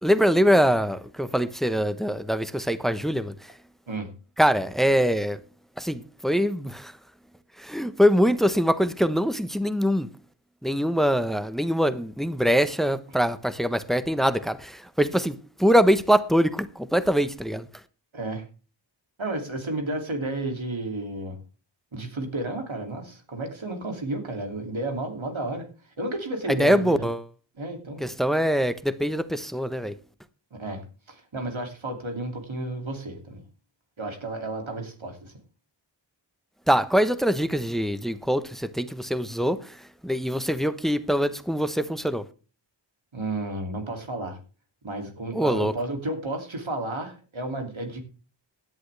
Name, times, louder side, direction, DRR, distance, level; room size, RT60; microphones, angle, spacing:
voice 1, 0.0-3.3 4.4-5.4 5.8-6.9 7.6-10.1 10.6-17.7 26.5-27.2 28.0-29.9 36.7-39.7 40.0-42.2 45.3-45.7, equal, ahead, 1.0 m, -23 dB
voice 2, 18.1-18.4 19.2-21.4 21.9-25.7 26.0-27.1 27.6-28.0 30.5-33.4 34.0-35.3 43.1-44.4 44.8-48.0, right 2 dB, 90° right, 2.9 m, -32 dB
16.5 x 10.5 x 3.4 m
wide cardioid pair, 50°, 46 cm